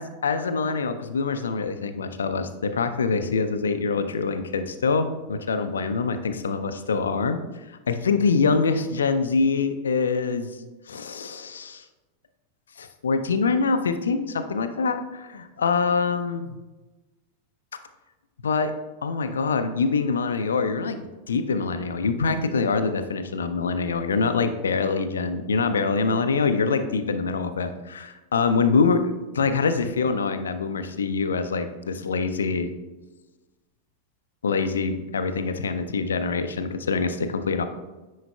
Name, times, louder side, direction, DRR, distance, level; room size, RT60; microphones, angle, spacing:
voice 1, 0.0-10.5 10.9-11.8 12.8-16.6 18.4-18.7 19.0-21.0 21.3-29.0 29.3-32.7 34.4-37.6, left 4 dB, 70° left, 9 dB, 0.4 m, -25 dB
9.4 x 4.7 x 2.2 m, 1.1 s
figure-of-eight pair, 90°, 0 cm